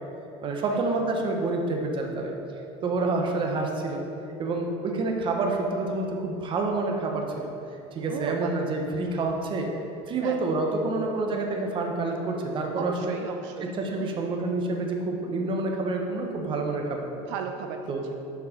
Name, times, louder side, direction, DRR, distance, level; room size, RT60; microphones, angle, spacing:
voice 1, 0.4-2.3 2.8-4.0 4.4-7.5 7.9-9.7 10.1-13.2 13.7-17.0 17.9-18.0, right 3 dB, 30° right, 2 dB, 1.0 m, -28 dB
voice 2, 8.1-8.5 10.2-10.4 12.7-13.7 14.0-14.3 17.2-18.1, right 7 dB, 75° right, 5 dB, 0.5 m, -36 dB
7.0 x 4.7 x 5.2 m, 2.9 s
supercardioid pair, 130°, 16 cm